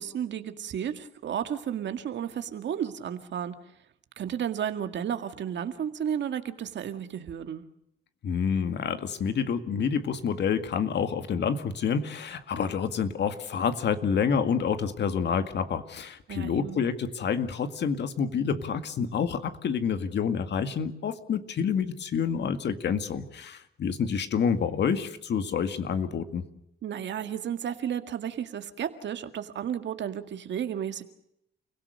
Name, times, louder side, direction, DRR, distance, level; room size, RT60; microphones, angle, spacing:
voice 1, 0.0-3.5 4.2-7.6 16.3-16.8 26.8-31.0, right 9 dB, 65° right, 9 dB, 2.0 m, -33 dB
voice 2, 8.2-26.4, left 6 dB, 60° left, 9 dB, 2.0 m, -28 dB
30.0 x 17.0 x 6.7 m, 0.78 s
cardioid pair, 90°, 20 cm